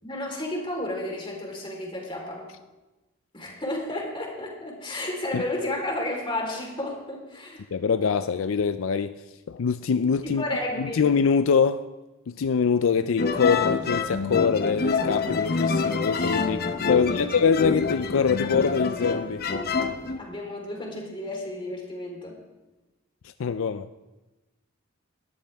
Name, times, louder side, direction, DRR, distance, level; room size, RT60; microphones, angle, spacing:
voice 1, 0.0-2.5 3.3-7.6 10.2-11.0 16.9-17.4 20.2-22.4, left 1 dB, 25° left, 3.9 m, -32 dB
voice 2, 7.7-9.1 9.5-10.4 10.8-11.9 12.3-19.5 23.4-23.9, left 6 dB, 80° left, 0.4 m, -24 dB
sound 1, 13.2-20.2, left 4 dB, 50° left, 0.9 m, -27 dB
20.5 x 13.0 x 3.5 m
head